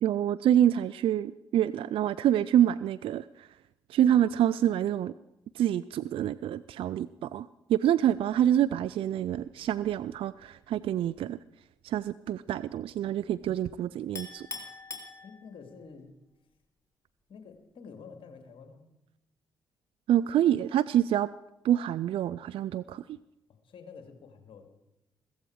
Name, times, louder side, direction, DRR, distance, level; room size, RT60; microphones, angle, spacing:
voice 1, 0.0-3.5 3.9-5.1 5.5-11.4 11.8-14.5 20.1-21.3 21.6-23.0, right 11 dB, 55° right, 16 dB, 0.4 m, -26 dB
Chink clink, 14.2-15.8, left 3 dB, 25° left, 3.3 m, -42 dB
voice 2, 15.2-16.1 17.3-18.9 23.5-24.7, left 5 dB, 55° left, 7 dB, 2.5 m, -49 dB
16.0 x 15.5 x 4.8 m, 0.90 s
hypercardioid pair, 40°, 11 cm